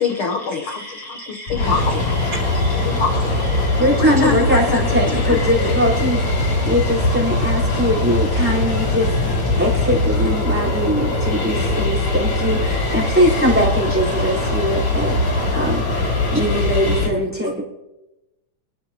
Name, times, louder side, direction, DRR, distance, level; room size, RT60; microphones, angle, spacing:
voice 1, 0.0-2.3 2.8-5.8, left 4 dB, 85° left, 4 dB, 1.1 m, -25 dB
sound 1, 1.5-17.1, left 2 dB, 50° left, 4.2 m, -21 dB
voice 2, 2.3-3.2 4.0-4.4 10.1-10.3 13.9-14.0, right 2 dB, 55° right, -6 dB, 3.3 m, -38 dB
voice 3, 3.8-15.2 15.5-16.0 16.3-17.6, equal, 5° right, -6 dB, 3.7 m, -21 dB
25.0 x 11.0 x 2.9 m, 0.98 s
omnidirectional pair, 3.7 m